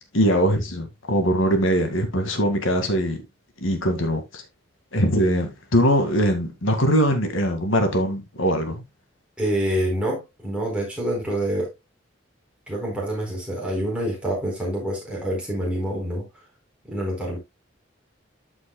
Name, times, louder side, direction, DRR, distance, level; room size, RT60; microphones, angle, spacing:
voice 1, 0.1-3.2 3.6-4.4 4.9-8.8, equal, 80° left, 1.9 m, -21 dB
voice 2, 9.4-11.7 12.7-16.2 16.9-17.4, right 1 dB, 5° right, 4.3 m, -26 dB
13.0 x 6.1 x 2.2 m
head